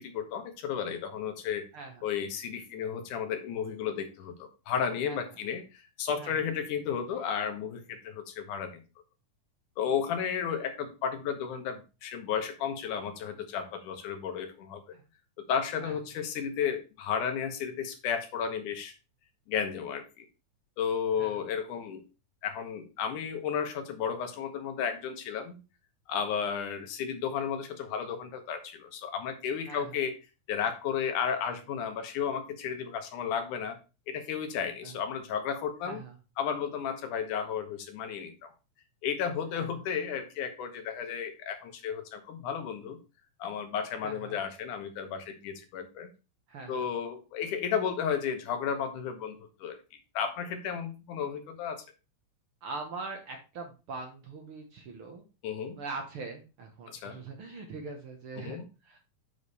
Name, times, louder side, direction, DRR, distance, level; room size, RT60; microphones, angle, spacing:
voice 1, 0.0-1.7 2.0-8.8 9.8-15.0 15.4-18.9 19.5-20.3 20.8-22.0 22.4-25.6 26.1-30.1 30.5-33.8 34.1-36.0 36.4-38.5 39.0-43.0 43.4-46.1 46.7-49.8 50.1-51.8 55.4-55.8 56.9-57.2 58.4-58.7, left 7 dB, 80° left, 6 dB, 2.6 m, -33 dB
voice 2, 35.8-36.1 39.5-39.7 44.0-44.4 46.5-46.9 52.6-55.2 55.8-58.6 58.8-59.0, right 4 dB, 55° right, 3 dB, 1.7 m, -42 dB
7.9 x 5.1 x 4.1 m, 0.30 s
omnidirectional pair, 3.5 m